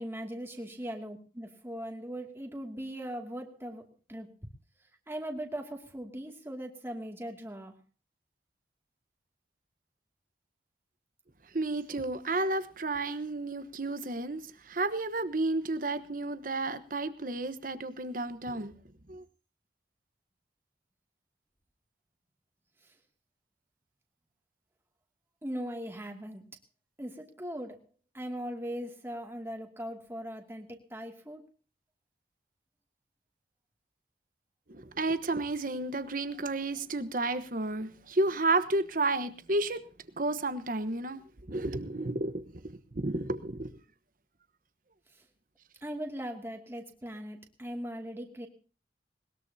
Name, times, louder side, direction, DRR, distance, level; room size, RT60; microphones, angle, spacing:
voice 1, 0.0-3.8 4.1-4.3 5.1-7.7 22.8-22.9 25.4-26.4 27.0-27.8 28.1-31.4 45.1-45.3 45.8-48.5, equal, 15° right, 2.4 m, -39 dB
voice 2, 11.5-18.7 19.1-19.2 34.7-39.9 40.2-41.2 41.5-42.6 42.9-43.7 48.2-48.3, right 2 dB, 50° right, 1.2 m, -32 dB
21.0 x 20.5 x 2.8 m
head